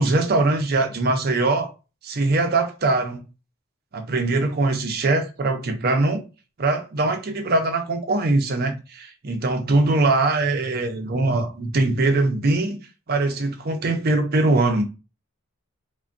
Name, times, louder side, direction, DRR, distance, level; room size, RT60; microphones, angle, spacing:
voice 1, 0.0-1.7 2.0-3.2 3.9-6.2 6.6-12.8 13.1-14.8, right 2 dB, 45° right, 0.5 m, -22 dB
3.4 x 2.2 x 2.5 m
head